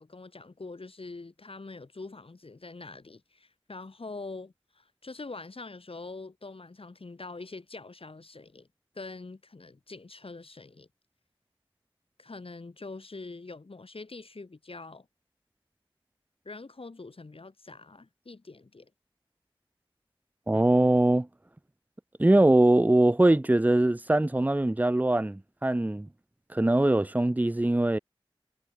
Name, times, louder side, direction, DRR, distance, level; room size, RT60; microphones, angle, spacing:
voice 1, 0.0-8.7 8.9-10.9 12.2-15.1 16.4-18.9, left 3 dB, 85° left, 2.9 m, -44 dB
voice 2, 20.5-21.3 22.2-26.1 26.5-28.0, right 1 dB, 15° right, 0.6 m, -22 dB
wide cardioid pair, 50°, 9 cm